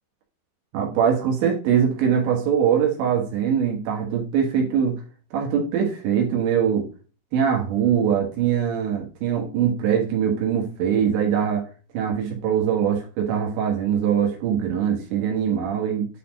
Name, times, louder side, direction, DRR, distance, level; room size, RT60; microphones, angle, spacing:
voice 1, 0.7-5.0 5.3-6.9 7.3-11.6 11.9-16.1, right 8 dB, 75° right, 0 dB, 3.7 m, -22 dB
10.0 x 4.2 x 5.3 m, 0.36 s
omnidirectional pair, 5.1 m